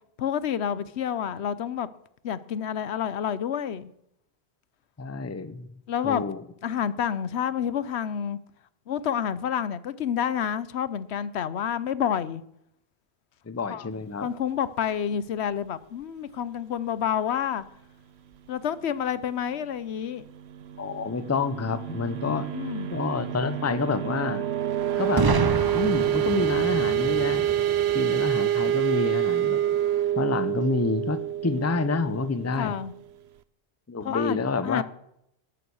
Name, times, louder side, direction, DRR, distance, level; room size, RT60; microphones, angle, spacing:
voice 1, 0.2-1.9 2.2-3.9 5.9-6.2 6.6-8.4 8.9-12.4 13.7-13.9 14.2-17.6 18.5-20.2 22.3-22.9 32.6-32.9 34.0-34.8, left 8 dB, 80° left, 1.0 m, -29 dB
voice 2, 5.0-5.7 6.0-6.4 13.5-14.3 20.8-22.5 22.9-24.5 25.0-25.4 25.7-27.5 27.9-29.6 30.2-32.7 33.9-34.8, left 4 dB, 20° left, 0.6 m, -28 dB
sound 1, 20.5-33.0, right 11 dB, 75° right, 1.0 m, -27 dB
Boom, 25.2-29.0, right 3 dB, 30° right, 0.5 m, -29 dB
13.0 x 11.0 x 7.1 m
omnidirectional pair, 1.1 m